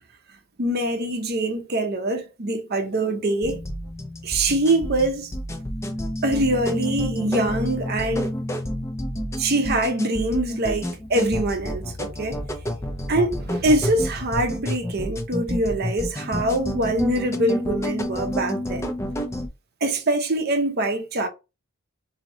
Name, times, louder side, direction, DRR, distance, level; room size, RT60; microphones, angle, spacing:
voice 1, 0.6-3.6 4.2-5.3 6.2-8.3 9.4-12.4 13.1-18.9 19.8-21.3, right 1 dB, 45° right, 0.7 m, -24 dB
sound 1, 3.4-19.5, left 1 dB, 15° left, 0.5 m, -30 dB
3.0 x 2.8 x 2.7 m
head